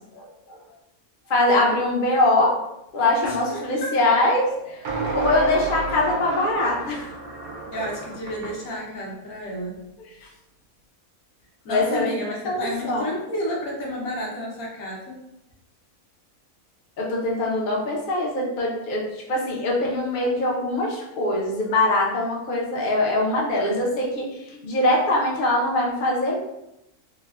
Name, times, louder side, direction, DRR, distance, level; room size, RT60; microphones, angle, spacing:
voice 1, 0.1-0.6 1.3-2.5 2.9-7.1 10.2-10.3 11.7-12.1 12.4-13.1 17.0-26.4, left 2 dB, 55° left, -3 dB, 0.6 m, -23 dB
voice 2, 3.2-3.9 4.9-5.1 7.7-9.8 11.6-15.2, left 1 dB, 80° left, -2 dB, 1.2 m, -31 dB
sound 1, 3.2-3.4 4.9-8.6, right 3 dB, 85° right, 1.1 m, -31 dB
3.1 x 2.1 x 2.3 m, 0.86 s
omnidirectional pair, 1.5 m